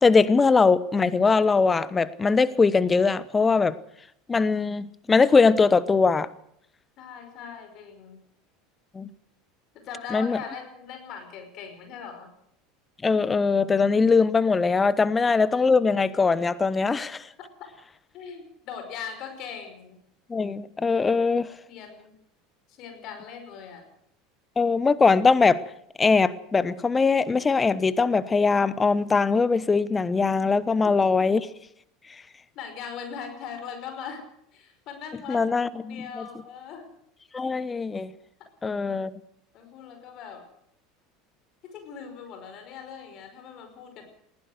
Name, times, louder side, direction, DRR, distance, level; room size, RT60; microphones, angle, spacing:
voice 1, 0.0-3.7 4.3-6.3 8.9-9.1 10.1-10.4 13.0-17.3 20.3-21.5 24.6-25.6 26.0-31.5 35.3-36.2 37.3-38.1 38.6-39.1, left 4 dB, 20° left, 17 dB, 1.1 m, -21 dB
voice 2, 7.0-8.2 9.7-12.3 18.1-20.0 21.7-22.1 22.7-23.8 30.8-30.9 32.6-34.2 34.5-35.5 35.7-36.9 38.4-38.5 39.5-40.4 41.6-44.0, left 7 dB, 50° left, 6 dB, 5.2 m, -40 dB
20.5 x 16.5 x 8.0 m, 0.72 s
figure-of-eight pair, 75°, 0 cm